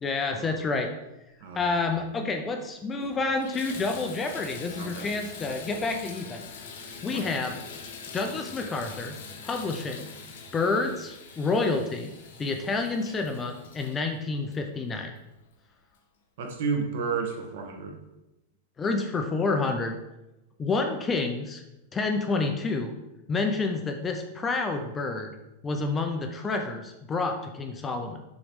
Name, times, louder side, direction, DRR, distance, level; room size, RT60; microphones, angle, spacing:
voice 1, 0.0-0.9 1.5-6.4 7.0-7.6 8.1-9.2 9.4-10.1 10.5-12.1 12.4-15.1 18.8-20.0 20.6-21.6 21.9-22.9 23.3-25.3 25.6-28.2, left 3 dB, 10° left, 5 dB, 0.4 m, -29 dB
voice 2, 1.4-1.8 4.8-5.1 7.1-7.3 16.4-18.0, right 5 dB, 55° right, 3 dB, 1.2 m, -32 dB
Water tap faucet / Bathtub (filling or washing), 2.3-2.4 2.9-15.3 15.9-16.0 16.6-16.7, left 5 dB, 65° left, 1.2 m, -44 dB
7.0 x 3.0 x 5.1 m, 0.95 s
supercardioid pair, 175°, 0 cm